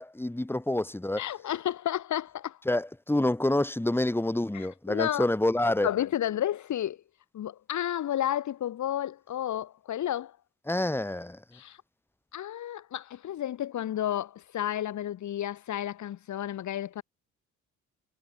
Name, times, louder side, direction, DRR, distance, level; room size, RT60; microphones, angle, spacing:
voice 1, 0.0-1.2 2.7-5.9 10.7-11.4, left 1 dB, 5° left, 2.4 m, -27 dB
voice 2, 1.2-2.6 4.5-5.3 5.8-7.0 7.3-10.3 11.5-11.8 12.3-17.0, left 11 dB, 70° left, 5.4 m, -31 dB
cardioid pair, 90°, 30 cm